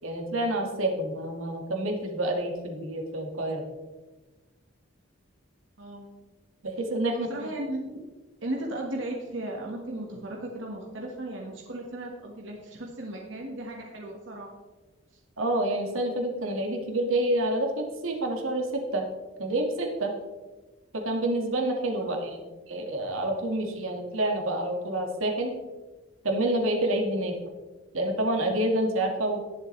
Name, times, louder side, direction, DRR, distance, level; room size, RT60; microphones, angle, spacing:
voice 1, 0.0-3.6 6.6-7.3 15.4-19.1 19.4-20.1 20.9-25.5 26.2-27.3 27.9-29.4, right 1 dB, 80° right, 2 dB, 2.0 m, -28 dB
voice 2, 5.8-6.1 7.1-7.9 8.4-14.5 22.0-22.1, right 1 dB, 65° right, -1 dB, 1.7 m, -36 dB
19.5 x 7.3 x 3.3 m, 1.2 s
head